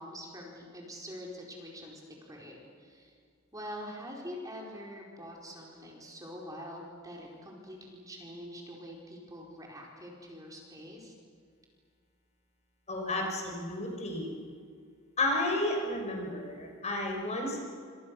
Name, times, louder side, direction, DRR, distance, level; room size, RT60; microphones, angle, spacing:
voice 1, 0.0-3.2 3.5-11.1, equal, 15° right, -2 dB, 4.8 m, -45 dB
voice 2, 12.9-14.3 15.2-17.7, left 1 dB, 35° left, 1 dB, 5.8 m, -32 dB
30.0 x 26.5 x 6.7 m, 2.1 s
head